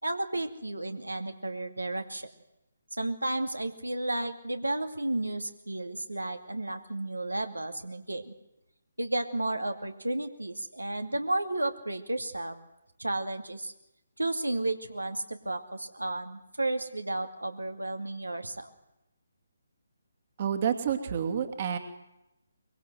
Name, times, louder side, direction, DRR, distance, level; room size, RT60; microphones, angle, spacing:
voice 1, 0.0-2.3 2.9-8.3 9.0-12.6 13.0-13.7 14.2-18.7, right 2 dB, 80° right, 6 dB, 2.5 m, -32 dB
voice 2, 20.4-21.8, right 8 dB, 35° right, 7 dB, 2.5 m, -29 dB
23.5 x 23.0 x 7.9 m, 0.91 s
figure-of-eight pair, 145°, 0 cm